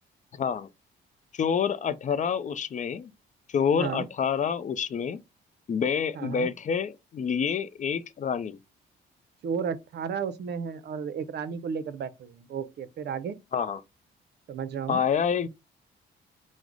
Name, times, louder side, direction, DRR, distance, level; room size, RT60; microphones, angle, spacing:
voice 1, 0.4-0.7 1.3-3.1 3.5-5.2 5.7-8.6 13.5-13.8 14.9-15.5, left 7 dB, 40° left, 0.4 m, -27 dB
voice 2, 6.1-6.5 9.4-13.4 14.5-15.0, right 6 dB, 55° right, 0.5 m, -33 dB
4.7 x 2.1 x 3.7 m
cardioid pair, 90°, 20 cm